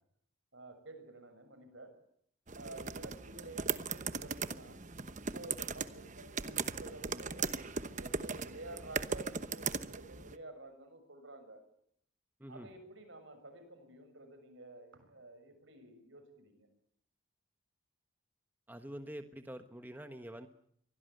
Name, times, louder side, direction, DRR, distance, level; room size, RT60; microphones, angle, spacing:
voice 1, 0.5-1.9 2.5-4.8 5.1-11.6 12.5-16.7, right 2 dB, 65° right, 7 dB, 6.9 m, -51 dB
sound 1, 2.5-10.4, right 5 dB, 40° right, 1.0 m, -38 dB
voice 2, 18.7-20.5, right 1 dB, 10° right, 6 dB, 1.3 m, -46 dB
24.0 x 17.0 x 9.3 m, 0.67 s
head